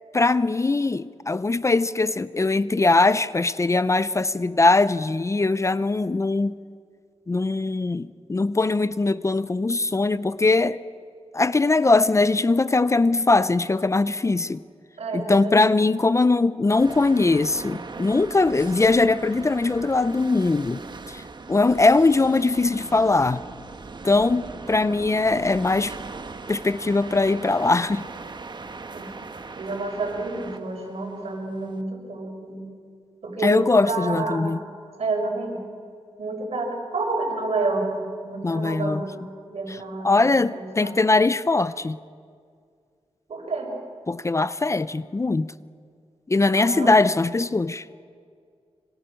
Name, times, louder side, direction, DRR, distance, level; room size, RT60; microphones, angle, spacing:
voice 1, 0.1-6.6 7.3-10.8 11.3-14.6 15.1-20.8 21.1-21.2 21.5-23.4 24.0-25.9 26.5-28.1 33.4-34.6 38.4-39.0 39.7-42.0 44.1-45.5 46.3-47.8, left 3 dB, 25° left, 0.6 m, -21 dB
voice 2, 15.0-15.7 28.9-29.1 29.6-32.7 33.2-34.5 35.0-35.6 36.2-40.3 40.5-40.9 43.3-43.7 46.5-46.9, right 3 dB, 70° right, 5.9 m, -29 dB
sound 1, 16.7-31.8, right 4 dB, 45° right, 1.3 m, -39 dB
26.0 x 24.0 x 6.4 m
wide cardioid pair, 90°, 11 cm